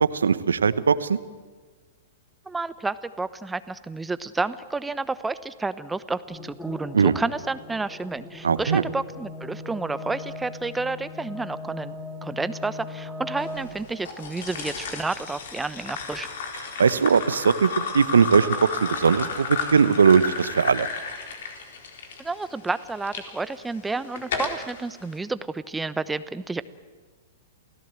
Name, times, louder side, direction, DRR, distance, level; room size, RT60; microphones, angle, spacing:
voice 1, 0.1-1.2 6.9-7.1 8.4-8.8 16.8-20.9, right 6 dB, 75° right, 15 dB, 1.0 m, -20 dB
voice 2, 2.5-11.9 12.2-16.3 22.2-26.6, right 3 dB, 10° right, 14 dB, 0.9 m, -30 dB
sound 1, 6.3-14.0, left 2 dB, 10° left, 4.9 m, -39 dB
sound 2, 14.0-23.2 23.8-24.7, left 5 dB, 60° left, 4.0 m, -32 dB
28.0 x 17.0 x 7.7 m, 1.4 s
figure-of-eight pair, 105°, 0 cm